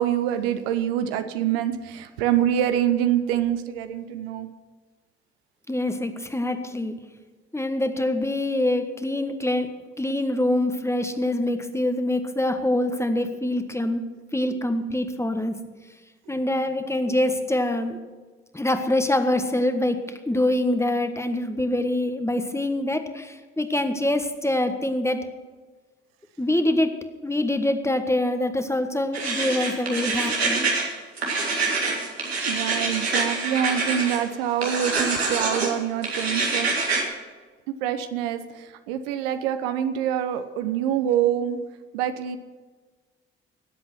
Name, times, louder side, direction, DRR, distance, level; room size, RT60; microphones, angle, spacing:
voice 1, 0.0-4.5 14.5-14.6 16.3-16.4 31.8-32.0 32.4-36.7 37.8-41.6 41.9-42.4, right 10 dB, 70° right, 10 dB, 0.8 m, -25 dB
voice 2, 5.7-7.0 7.5-15.6 16.3-18.0 18.5-25.3 26.4-27.0 27.2-30.6, left 1 dB, 10° left, 8 dB, 1.4 m, -25 dB
sound 1, 29.1-30.9 31.2-34.2 34.6-35.7 36.0-37.0, right 3 dB, 85° right, 2.0 m, -25 dB
17.5 x 8.0 x 6.2 m, 1.4 s
figure-of-eight pair, 45°, 31 cm